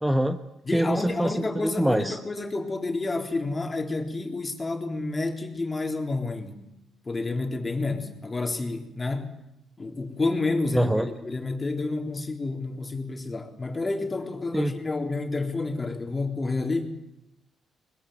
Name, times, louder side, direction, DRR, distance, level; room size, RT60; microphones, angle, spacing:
voice 1, 0.0-0.4 0.7-2.2 10.7-11.1 14.5-14.7, right 1 dB, 5° right, 7 dB, 1.3 m, -24 dB
voice 2, 0.6-6.6 7.1-9.3 9.8-17.0, left 3 dB, 25° left, 4 dB, 3.9 m, -29 dB
22.0 x 21.0 x 9.4 m, 0.85 s
cardioid pair, 90°, 0 cm